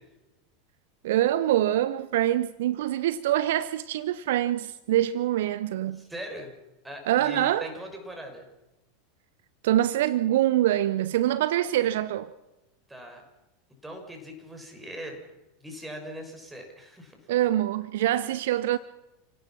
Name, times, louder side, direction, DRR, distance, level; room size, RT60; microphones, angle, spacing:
voice 1, 1.0-6.0 7.1-7.7 9.6-12.3 17.3-18.8, right 13 dB, 60° right, 0.7 m, -25 dB
voice 2, 5.9-6.5 6.8-8.5 12.9-13.3 13.8-15.2 15.6-17.3, equal, 10° right, 6.4 m, -40 dB
30.0 x 17.0 x 6.1 m
figure-of-eight pair, 85°, 0 cm